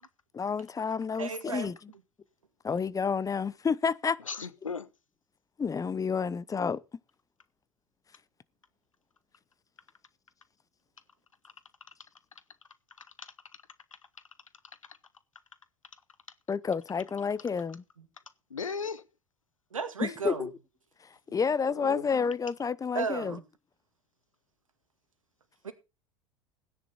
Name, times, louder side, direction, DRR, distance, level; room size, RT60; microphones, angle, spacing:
voice 1, 0.3-1.8 2.6-4.2 5.6-6.8 16.5-17.8 20.0-20.5 21.3-23.4, left 6 dB, 20° left, 0.9 m, -30 dB
voice 2, 1.2-1.7 19.7-20.5 22.9-23.4 25.6-25.7, right 5 dB, 85° right, 2.1 m, -34 dB
voice 3, 4.2-4.9 11.4-11.5 13.0-13.3 14.9-15.0 18.5-19.0 21.3-21.5 21.7-22.1, left 5 dB, 85° left, 0.9 m, -37 dB
16.0 x 10.0 x 4.3 m
figure-of-eight pair, 75°, 17 cm